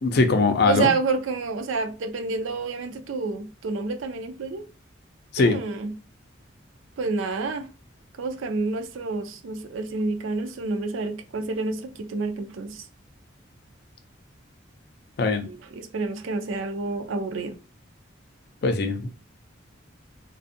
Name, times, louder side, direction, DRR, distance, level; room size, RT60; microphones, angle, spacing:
voice 1, 0.0-0.9 5.3-5.6 15.2-15.4 18.6-19.1, left 3 dB, 55° left, 0.4 m, -21 dB
voice 2, 0.6-4.6 5.4-5.9 7.0-7.7 8.2-12.8 15.5-17.5, right 3 dB, 80° right, 0.4 m, -29 dB
2.5 x 2.3 x 2.6 m
head